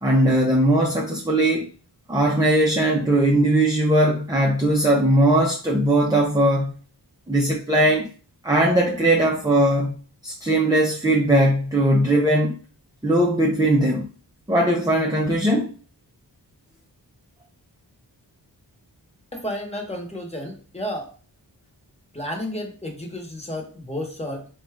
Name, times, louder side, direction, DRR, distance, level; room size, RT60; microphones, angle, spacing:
voice 1, 0.0-1.7 2.1-6.7 7.3-8.1 8.4-9.9 10.2-12.6 13.0-14.1 14.5-15.7, right 1 dB, 10° right, -1 dB, 0.6 m, -19 dB
voice 2, 19.3-21.1 22.1-24.5, left 1 dB, 15° left, 2 dB, 1.2 m, -32 dB
3.8 x 2.4 x 3.5 m, 0.40 s
wide cardioid pair, 40°, 43 cm